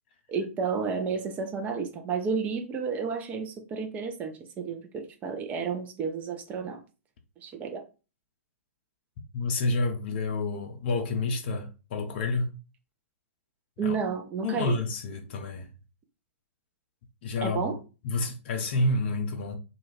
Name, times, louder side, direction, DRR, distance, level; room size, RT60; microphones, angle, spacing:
voice 1, 0.3-6.8 7.4-7.8 13.8-14.8 17.4-17.8, right 5 dB, 20° right, 0.5 m, -31 dB
voice 2, 9.3-12.5 13.8-14.0 14.4-15.7 17.2-17.8 18.0-19.6, left 2 dB, 45° left, 0.6 m, -29 dB
2.3 x 2.2 x 3.2 m
figure-of-eight pair, 110°, 8 cm